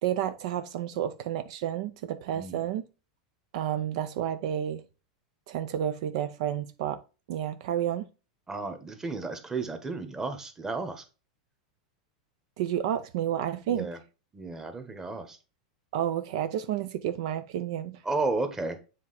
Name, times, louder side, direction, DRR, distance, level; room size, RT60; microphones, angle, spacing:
voice 1, 0.0-2.8 3.5-4.8 5.5-7.0 7.3-8.0 12.6-13.9 15.9-18.0, right 10 dB, 65° right, 0.5 m, -30 dB
voice 2, 2.3-2.7 8.5-11.0 13.7-14.0 14.3-15.4 18.0-18.8, right 3 dB, 15° right, 1.2 m, -33 dB
7.3 x 3.6 x 4.0 m
hypercardioid pair, 115°, 4 cm